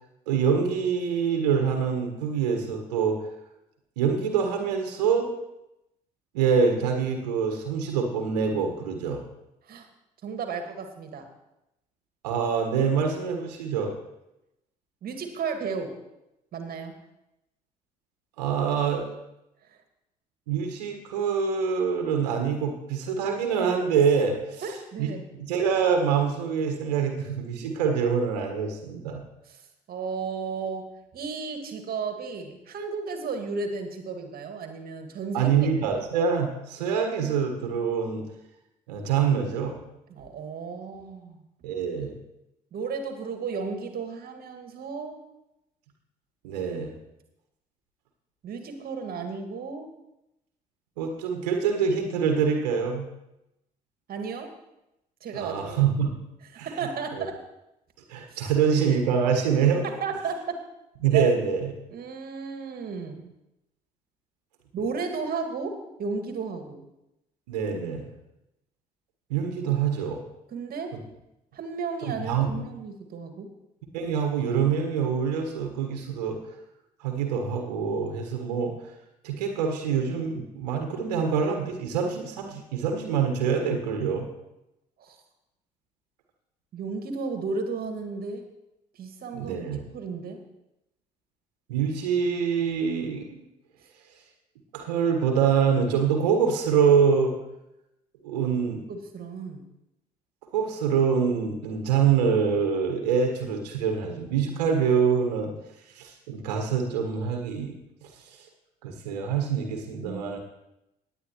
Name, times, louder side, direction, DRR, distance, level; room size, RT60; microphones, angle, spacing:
voice 1, 0.3-3.2 4.0-5.3 6.3-9.2 12.2-13.9 18.4-19.0 20.5-24.6 25.0-25.1 25.4-29.2 35.3-38.2 38.9-39.7 41.6-42.1 46.4-46.9 51.0-53.1 55.3-56.1 56.6-56.7 58.1-59.8 61.0-61.7 67.5-68.1 69.3-70.2 72.0-72.5 73.9-76.4 77.0-78.7 79.2-84.3 89.4-89.8 91.7-93.4 94.7-97.3 98.2-98.8 100.5-105.5 105.9-107.7 108.0-108.1 108.8-110.4, right 6 dB, 70° right, 3 dB, 1.5 m, -25 dB
voice 2, 10.2-11.3 15.0-15.9 16.5-17.0 24.6-25.2 29.5-29.6 29.9-30.9 31.1-35.5 40.1-41.4 42.7-45.2 48.4-49.9 54.1-54.5 55.2-55.8 56.5-57.4 58.3-58.5 59.8-60.6 61.1-61.3 61.9-63.2 64.7-66.8 69.6-69.7 70.5-70.9 71.5-73.5 85.0-85.2 86.7-88.4 88.9-89.6 89.9-90.4 98.9-99.7 110.1-110.2, right 5 dB, 45° right, 5 dB, 2.0 m, -34 dB
17.5 x 9.2 x 3.1 m, 0.90 s
figure-of-eight pair, 50°, 21 cm